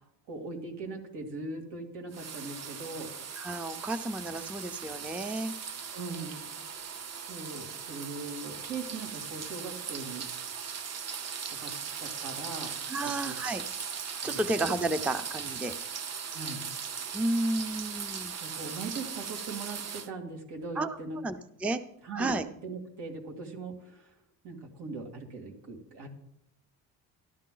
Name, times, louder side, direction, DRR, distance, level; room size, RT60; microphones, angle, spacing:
voice 1, 0.3-3.1 5.9-6.4 7.3-10.3 11.5-11.7 12.0-12.7 13.0-13.4 14.2-14.4 16.3-16.6 18.4-21.2 22.0-22.4 22.6-24.1 24.4-26.1, right 3 dB, 85° right, 1 dB, 2.7 m, -40 dB
sound 1, 2.1-20.1, right 6 dB, 40° right, 0.7 m, -39 dB
voice 2, 3.4-5.5 12.9-13.6 14.2-15.7 17.1-18.3 20.8-21.0 21.2-21.8 22.2-22.5, right 2 dB, 5° right, 11 dB, 0.3 m, -32 dB
13.0 x 12.5 x 3.8 m, 0.78 s
cardioid pair, 155°, 40 cm